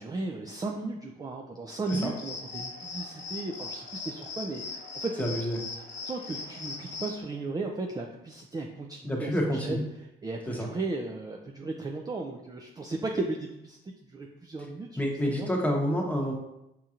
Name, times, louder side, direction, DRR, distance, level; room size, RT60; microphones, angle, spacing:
voice 1, 0.0-5.2 6.1-9.3 9.6-9.8 10.2-13.8 14.1-15.5, right 3 dB, 20° right, 1 dB, 0.4 m, -35 dB
sound 1, 1.9-7.2, left 4 dB, 60° left, 0.9 m, -39 dB
voice 2, 5.2-5.6 9.0-9.8 10.5-10.7 15.0-16.3, equal, 5° left, -1 dB, 0.9 m, -28 dB
5.2 x 2.9 x 2.4 m, 0.88 s
cardioid pair, 90°, 20 cm